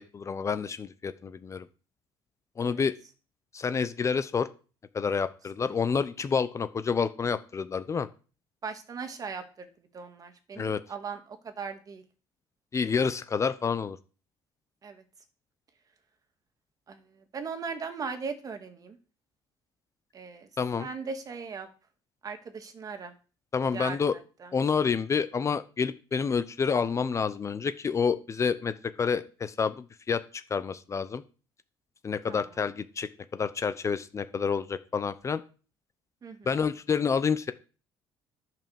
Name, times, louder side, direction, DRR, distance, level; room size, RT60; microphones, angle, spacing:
voice 1, 0.0-1.7 2.6-2.9 3.5-4.5 4.9-8.1 10.6-10.8 12.7-14.0 20.6-20.9 23.5-24.1 24.5-31.2 32.0-35.4 36.5-37.5, left 6 dB, 30° left, 13 dB, 0.8 m, -28 dB
voice 2, 8.6-9.7 9.9-12.0 14.8-15.0 16.9-19.0 20.1-20.5 20.8-21.7 22.2-23.1 23.7-24.5 32.3-32.4 36.2-36.5, right 5 dB, 40° right, 8 dB, 2.0 m, -39 dB
10.5 x 5.8 x 7.1 m, 0.35 s
cardioid pair, 115°, 10 cm